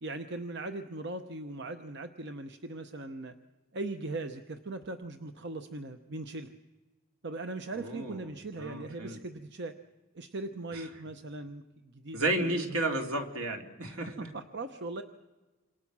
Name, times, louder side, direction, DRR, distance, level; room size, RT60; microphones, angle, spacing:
voice 1, 0.0-3.3 3.7-6.5 7.2-9.7 10.1-12.6 13.8-15.0, right 2 dB, 50° right, 8 dB, 0.8 m, -39 dB
voice 2, 7.8-8.3 8.6-9.2 10.7-10.9 12.1-14.3, right 2 dB, 75° right, 3 dB, 2.8 m, -32 dB
28.5 x 26.0 x 6.1 m, 1.3 s
head